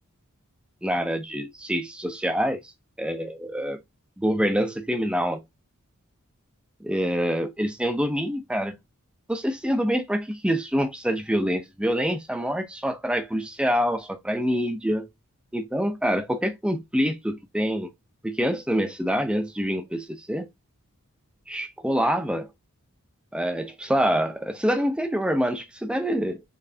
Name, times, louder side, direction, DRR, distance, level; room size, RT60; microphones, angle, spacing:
voice 1, 0.8-2.6 3.0-3.8 4.2-5.4 6.8-8.8 9.3-15.1 15.5-17.9 18.2-20.5 21.5-22.5 23.3-26.4, equal, 5° right, 0.5 m, -26 dB
4.1 x 3.7 x 2.7 m
head